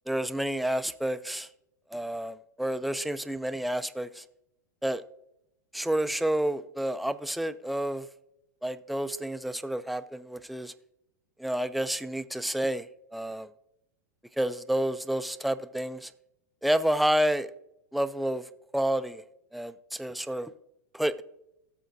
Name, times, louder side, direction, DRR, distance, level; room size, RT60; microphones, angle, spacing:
voice 1, 0.1-1.5 1.9-4.2 4.8-5.0 5.7-8.1 8.6-10.7 11.4-12.9 13.1-13.5 14.4-16.1 16.6-17.5 17.9-19.2 19.5-20.5 20.9-21.2, right 1 dB, ahead, 0.3 m, -29 dB
17.0 x 6.9 x 2.6 m
hypercardioid pair, 110°, 10 cm